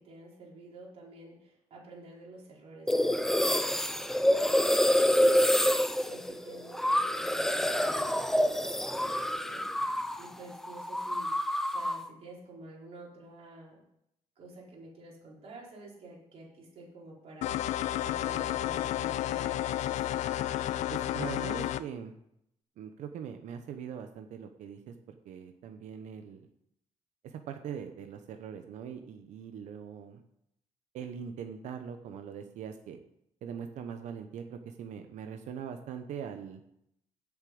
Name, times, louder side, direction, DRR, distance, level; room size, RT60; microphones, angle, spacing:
voice 1, 0.0-13.8 14.4-17.6 18.0-20.1, right 2 dB, 55° right, -4 dB, 4.7 m, -50 dB
sound 1, 2.9-10.3 10.5-12.1, equal, 5° left, 0.5 m, -27 dB
sound 2, 17.4-21.8, left 13 dB, 75° left, 0.5 m, -31 dB
voice 2, 20.9-22.1 22.8-26.5 27.2-30.2 30.9-33.0 33.4-36.6, right 8 dB, 80° right, 7 dB, 0.9 m, -42 dB
8.2 x 7.2 x 7.8 m, 0.77 s
cardioid pair, 140°, 12 cm